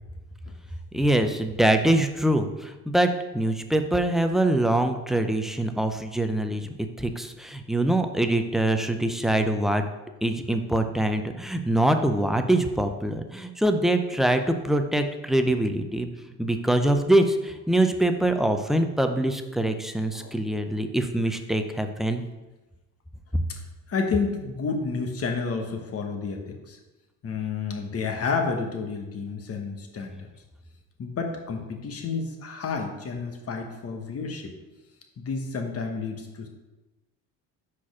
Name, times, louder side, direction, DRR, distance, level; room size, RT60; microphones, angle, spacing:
voice 1, 0.9-6.7 7.0-9.8 10.2-16.1 16.4-22.2, right 1 dB, ahead, 6 dB, 0.4 m, -24 dB
voice 2, 23.9-26.8 27.2-30.3 31.0-34.5 35.2-36.5, left 4 dB, 40° left, 3 dB, 1.2 m, -30 dB
4.9 x 4.3 x 5.9 m, 1.1 s
cardioid pair, 100°, 38 cm